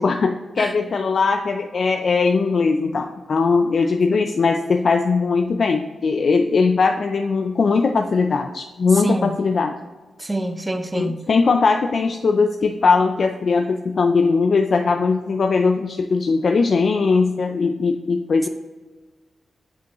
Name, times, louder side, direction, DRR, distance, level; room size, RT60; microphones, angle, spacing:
voice 1, 0.0-9.7 10.9-18.5, left 4 dB, 55° left, 5 dB, 0.4 m, -20 dB
voice 2, 9.0-9.4 10.2-11.2, right 1 dB, 15° right, 7 dB, 0.6 m, -26 dB
7.9 x 5.3 x 3.0 m, 1.3 s
wide cardioid pair, 125°, 0 cm